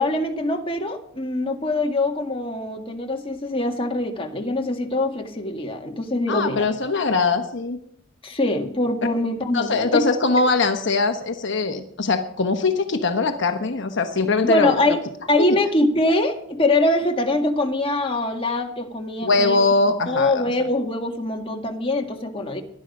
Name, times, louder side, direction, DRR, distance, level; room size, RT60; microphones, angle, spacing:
voice 1, 0.0-6.7 8.2-10.1 14.4-15.0 15.3-19.6 20.1-22.6, left 2 dB, 25° left, 3 dB, 1.8 m, -23 dB
voice 2, 6.3-7.8 9.5-14.7 15.4-15.5 19.2-20.4, left 3 dB, 60° left, 6 dB, 1.1 m, -21 dB
19.0 x 11.5 x 5.4 m, 0.71 s
head